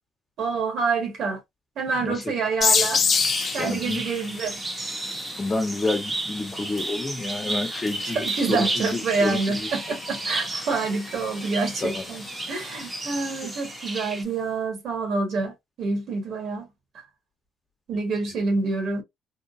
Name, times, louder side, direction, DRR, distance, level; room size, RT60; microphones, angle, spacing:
voice 1, 0.4-1.4 1.8-3.0 3.5-4.6 7.7-16.7 17.9-19.0, right 4 dB, 70° right, 1.8 m, -27 dB
sound 1, 2.6-14.0, left 5 dB, 50° left, 0.6 m, -31 dB
sound 2, 3.1-14.2, right 2 dB, 30° right, 1.0 m, -33 dB
voice 2, 3.6-4.0 5.4-8.2 8.5-9.7 11.8-12.0, left 2 dB, 30° left, 1.2 m, -29 dB
3.8 x 2.2 x 2.6 m
cardioid pair, 80°, 0 cm